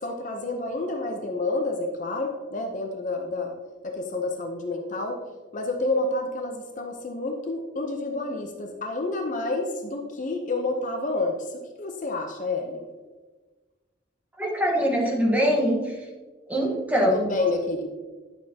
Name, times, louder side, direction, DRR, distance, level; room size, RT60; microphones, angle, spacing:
voice 1, 0.0-3.5 3.8-5.2 5.5-11.3 11.8-12.8 17.3-17.9, left 2 dB, 40° left, 3 dB, 0.7 m, -29 dB
voice 2, 14.4-16.1 16.5-17.3, equal, 10° right, -2 dB, 1.3 m, -23 dB
10.5 x 6.9 x 2.8 m, 1.3 s
head